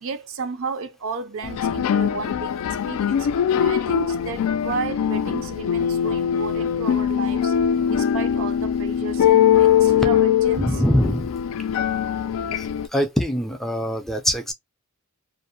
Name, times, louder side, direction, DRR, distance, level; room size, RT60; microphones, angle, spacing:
voice 1, 0.0-3.3 3.5-7.5 7.9-10.8, right 5 dB, 65° right, 0.5 m, -33 dB
sound 1, 1.4-12.9, left 9 dB, 75° left, 0.3 m, -21 dB
voice 2, 10.6-11.3 12.5-14.5, equal, ahead, 0.4 m, -23 dB
2.6 x 2.0 x 2.7 m
head